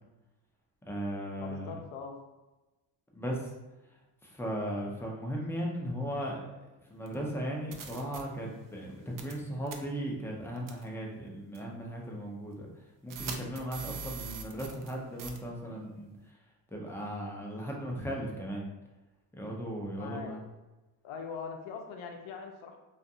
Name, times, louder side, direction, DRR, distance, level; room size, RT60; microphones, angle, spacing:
voice 1, 0.8-1.7 3.1-3.5 4.2-12.7 13.0-16.1 16.7-18.6 19.3-20.4, equal, 5° left, -2 dB, 0.5 m, -37 dB
voice 2, 1.4-2.2 19.9-20.4 21.0-22.8, left 6 dB, 75° left, 4 dB, 0.6 m, -42 dB
sound 1, 7.1-7.2 7.7-8.2 9.2-9.4 9.7-9.8 10.7-10.8 11.5-11.6 13.1-14.9 15.2-15.4, right 5 dB, 45° right, 0.4 m, -41 dB
2.4 x 2.4 x 2.7 m, 1.1 s
cardioid pair, 95°, 47 cm